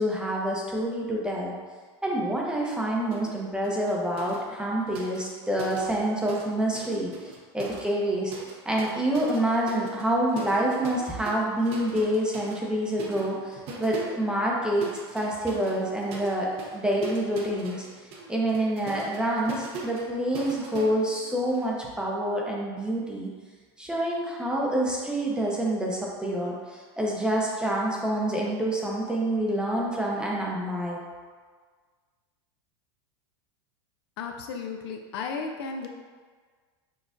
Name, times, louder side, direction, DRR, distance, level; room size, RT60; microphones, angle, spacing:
voice 1, 0.0-1.5 2.0-8.3 8.7-17.9 18.3-23.3 23.8-31.0, right 1 dB, 5° right, -3 dB, 0.6 m, -27 dB
sound 1, 3.1-3.4 3.6-6.5 6.7-21.7, right 3 dB, 45° right, 0.7 m, -41 dB
voice 2, 34.2-35.9, left 5 dB, 70° left, 3 dB, 0.5 m, -34 dB
6.2 x 2.3 x 2.5 m, 1.5 s
supercardioid pair, 130°, 14 cm